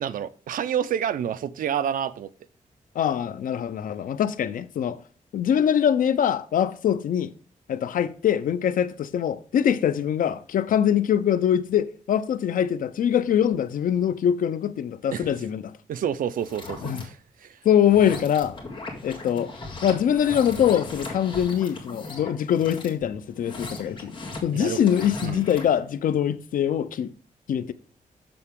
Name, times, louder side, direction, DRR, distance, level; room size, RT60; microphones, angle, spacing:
voice 1, 0.0-2.3 15.1-15.3 15.9-17.6 24.5-24.8 25.2-25.4, right 9 dB, 90° right, 0.5 m, -29 dB
voice 2, 2.9-5.0 5.3-7.3 7.7-15.7 16.8-17.0 17.6-18.6 19.0-19.5 19.8-24.1 24.4-27.1 27.5-27.7, left 9 dB, 90° left, 0.5 m, -23 dB
sound 1, 16.3-17.0 17.7-25.8, left 3 dB, 35° left, 2.0 m, -38 dB
6.9 x 6.8 x 3.6 m
wide cardioid pair, 170°, 14 cm